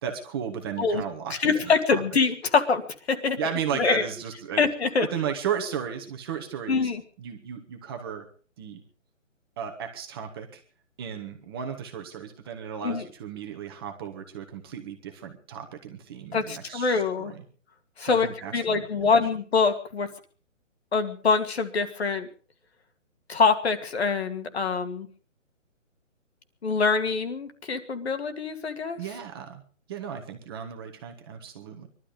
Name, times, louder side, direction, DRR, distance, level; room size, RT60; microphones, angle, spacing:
voice 1, 0.0-2.0 3.4-4.6 5.0-6.9 7.2-8.3 8.6-8.8 9.6-10.6 11.0-17.4 18.0-19.1 29.0-29.6 29.9-31.9, right 8 dB, 20° right, 4 dB, 1.4 m, -35 dB
voice 2, 1.4-3.4 3.8-4.0 4.6-5.1 6.7-7.0 12.8-13.0 16.3-17.3 18.0-20.1 20.9-22.3 23.3-25.1 26.6-29.0, left 4 dB, 55° left, 8 dB, 2.3 m, -24 dB
22.0 x 12.5 x 5.2 m, 0.40 s
hypercardioid pair, 165°, 39 cm